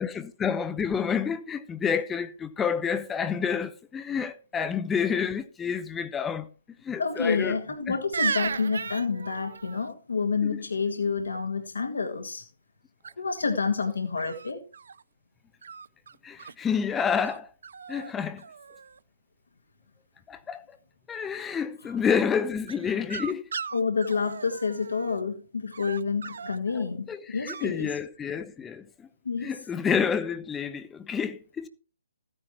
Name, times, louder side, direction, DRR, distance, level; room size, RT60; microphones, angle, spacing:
voice 1, 0.0-6.5 6.8-7.6 7.9-8.0 10.4-10.6 16.2-17.5 17.9-18.4 20.3-20.6 21.1-23.4 26.7-29.1 29.4-31.7, left 7 dB, 10° left, 0.7 m, -29 dB
voice 2, 7.0-12.4 13.2-14.6 23.7-27.9 29.3-29.5, left 5 dB, 75° left, 1.8 m, -28 dB
sound 1, 8.1-9.9 13.0-13.5 14.2-15.0 15.6-16.6 17.2-17.4 17.6-18.1 18.4-19.0 22.7-25.2 25.7-26.6 27.5-27.7, right 6 dB, 60° right, 0.5 m, -36 dB
14.0 x 9.8 x 3.1 m
figure-of-eight pair, 135°, 0 cm